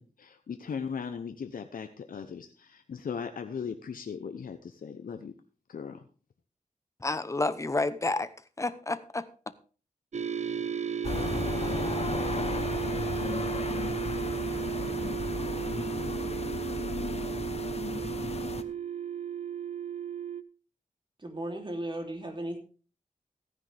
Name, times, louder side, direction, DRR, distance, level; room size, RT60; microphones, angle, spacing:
voice 1, 0.0-5.3 5.7-6.0, left 6 dB, 90° left, 0.8 m, -38 dB
voice 2, 7.0-8.3 8.6-9.3, left 2 dB, 20° left, 0.9 m, -30 dB
sound 1, 10.1-20.4, right 8 dB, 55° right, 0.7 m, -34 dB
sound 2, 11.0-18.6, left 4 dB, 45° left, 1.0 m, -34 dB
voice 3, 21.2-22.6, right 1 dB, 35° right, 3.1 m, -36 dB
15.0 x 9.9 x 3.5 m
wide cardioid pair, 80°, 14 cm